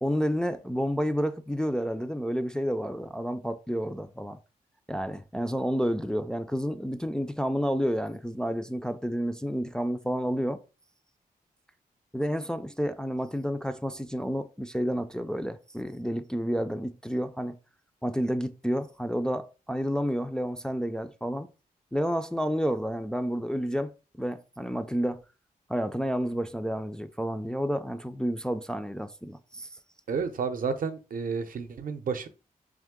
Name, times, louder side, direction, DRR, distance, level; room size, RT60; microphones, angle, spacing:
voice 1, 0.0-4.4 4.9-10.6 12.1-17.6 18.0-21.5 21.9-25.2 25.7-29.7, equal, 5° left, 0.3 m, -30 dB
voice 2, 30.1-32.3, right 5 dB, 65° right, 0.6 m, -31 dB
3.6 x 3.1 x 3.6 m
wide cardioid pair, 100°, 15 cm